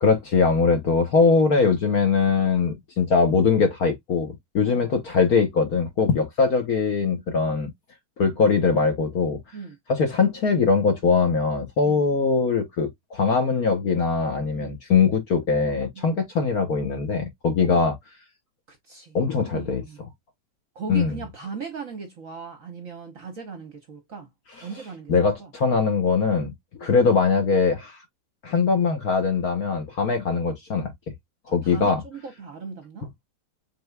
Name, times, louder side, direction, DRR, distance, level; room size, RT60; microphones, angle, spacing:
voice 1, 0.0-7.7 8.2-9.4 9.9-17.9 19.1-19.8 20.9-21.1 24.6-24.7 25.1-26.5 26.8-28.0 28.4-30.9 31.5-32.0, left 5 dB, 55° left, 1.1 m, -21 dB
voice 2, 18.7-19.2 19.5-20.0 20.7-24.3 24.6-25.1 25.4-25.5 26.8-26.9 30.1-30.2 31.5-33.1, right 5 dB, 55° right, 1.0 m, -38 dB
5.4 x 3.8 x 2.2 m
omnidirectional pair, 2.3 m